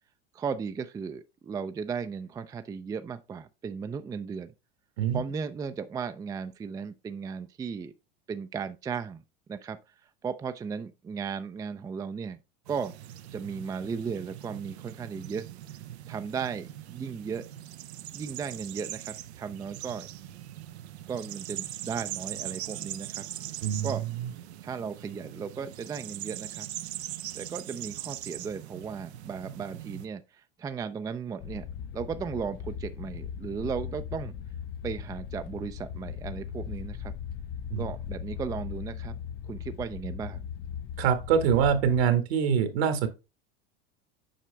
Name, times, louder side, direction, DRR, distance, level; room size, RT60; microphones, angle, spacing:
voice 1, 0.3-4.5 5.1-7.9 8.3-9.2 9.5-9.8 10.2-12.4 12.7-12.9 13.3-15.4 16.1-17.4 18.1-20.1 21.1-23.2 23.8-24.0 24.6-26.7 27.3-31.6 31.9-34.3 34.8-37.1 37.8-39.2 39.5-40.4, right 6 dB, 10° right, 0.4 m, -36 dB
sound 1, 12.7-30.1, right 13 dB, 90° right, 0.6 m, -41 dB
voice 2, 23.6-23.9 24.2-24.3 37.7-37.9 41.0-43.1, right 7 dB, 75° right, 1.6 m, -24 dB
sound 2, 31.4-42.0, left 8 dB, 45° left, 0.6 m, -38 dB
7.5 x 5.0 x 3.3 m
hypercardioid pair, 105°, 32 cm